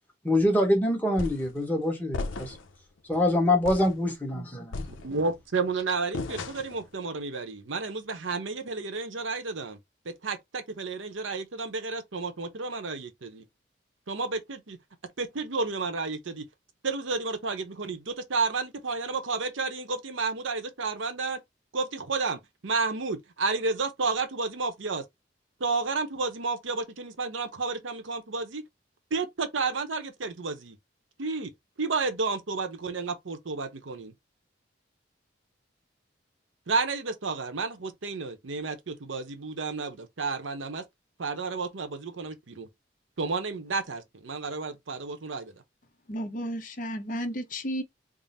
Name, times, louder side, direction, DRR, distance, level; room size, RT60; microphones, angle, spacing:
voice 1, 0.2-2.5 3.1-4.8, left 1 dB, 10° left, 1.0 m, -25 dB
sound 1, 1.2-1.6 2.1-2.7 3.1-3.3 3.6-4.0 4.7-5.4 6.1-6.9, left 3 dB, 85° left, 0.5 m, -35 dB
voice 2, 5.0-9.8 10.0-13.4 14.1-14.8 15.2-16.5 16.8-21.4 21.7-25.0 25.6-28.6 29.1-30.8 31.2-31.5 31.8-34.1 36.7-40.8 41.2-42.7 43.2-45.5, right 4 dB, 85° right, 0.8 m, -31 dB
voice 3, 46.1-47.8, equal, 45° left, 0.7 m, -33 dB
3.7 x 2.0 x 4.0 m
head